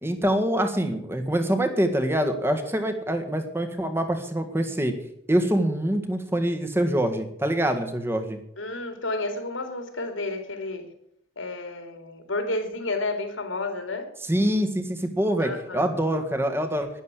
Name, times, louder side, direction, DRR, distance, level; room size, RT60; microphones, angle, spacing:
voice 1, 0.0-4.9 5.3-8.4 14.3-16.9, right 1 dB, 10° right, 6 dB, 1.7 m, -25 dB
voice 2, 8.6-10.9 11.4-14.1 15.4-16.2, left 2 dB, 85° left, 6 dB, 3.1 m, -31 dB
12.0 x 11.0 x 8.3 m, 0.73 s
head